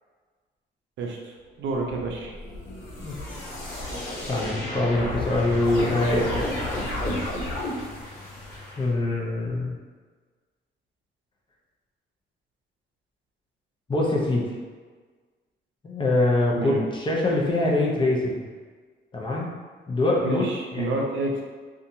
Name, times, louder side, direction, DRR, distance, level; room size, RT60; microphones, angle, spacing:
voice 1, 1.6-2.3 16.6-16.8 20.2-21.4, right 2 dB, 75° right, 0 dB, 0.5 m, -28 dB
sound 1, 1.7-8.8, left 1 dB, 90° left, 0.9 m, -32 dB
voice 2, 4.3-6.5 8.8-9.8 13.9-14.5 15.8-18.5 19.1-19.5 19.9-20.4 20.7-21.0, left 2 dB, 25° left, -3 dB, 0.6 m, -24 dB
2.7 x 2.4 x 2.6 m, 1.4 s
cardioid pair, 90°, 20 cm